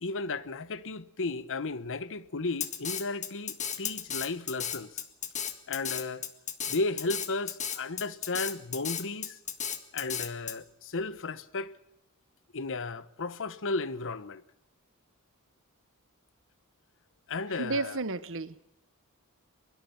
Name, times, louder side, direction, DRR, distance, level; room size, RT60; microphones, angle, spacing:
voice 1, 0.0-5.0 5.7-6.3 6.7-9.4 9.9-11.7 12.5-14.4 17.3-18.0, left 3 dB, 60° left, 1.1 m, -34 dB
Drum kit, 2.6-10.5, left 8 dB, 35° left, 1.8 m, -34 dB
voice 2, 17.6-18.6, right 3 dB, 60° right, 1.3 m, -32 dB
23.5 x 22.5 x 5.9 m
head